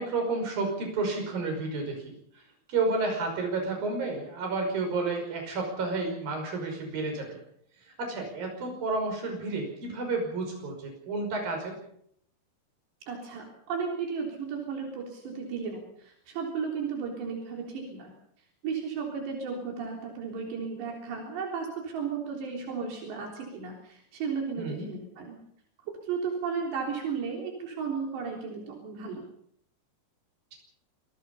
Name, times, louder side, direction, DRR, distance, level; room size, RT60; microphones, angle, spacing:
voice 1, 0.0-2.4 2.7-7.4 8.0-11.7 24.6-24.9, right 3 dB, 55° right, 3 dB, 7.2 m, -31 dB
voice 2, 13.1-18.1 18.6-25.4 26.0-29.2, right 5 dB, 85° right, 1 dB, 5.8 m, -34 dB
27.0 x 20.5 x 5.6 m, 0.70 s
omnidirectional pair, 4.8 m